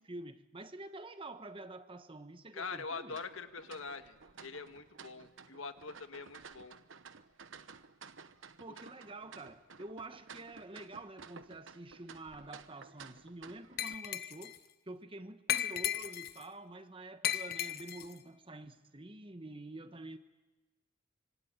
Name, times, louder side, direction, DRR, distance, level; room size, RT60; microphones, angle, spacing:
voice 1, 0.0-3.2 8.6-14.6 14.9-20.2, right 2 dB, 25° right, 1.2 m, -48 dB
voice 2, 2.5-6.7 8.7-8.8, left 4 dB, 75° left, 1.6 m, -44 dB
sound 1, 3.1-13.9, right 5 dB, 65° right, 1.1 m, -54 dB
Glass, 13.8-14.6 15.5-16.4 17.2-18.1, left 11 dB, 50° left, 0.8 m, -35 dB
26.0 x 25.0 x 9.0 m
head